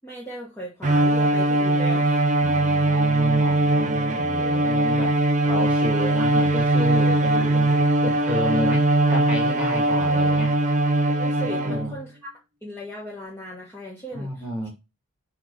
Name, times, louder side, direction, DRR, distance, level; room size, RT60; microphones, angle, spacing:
voice 1, 0.0-2.2 10.1-10.2 11.2-12.3 12.6-14.7, equal, 10° left, 1.5 m, -37 dB
Bowed string instrument, 0.8-12.0, right 2 dB, 35° right, 0.5 m, -21 dB
voice 2, 2.4-5.2 5.4-10.6 11.4-11.9 14.1-14.7, equal, 5° right, 2.2 m, -31 dB
5.8 x 3.4 x 5.4 m
head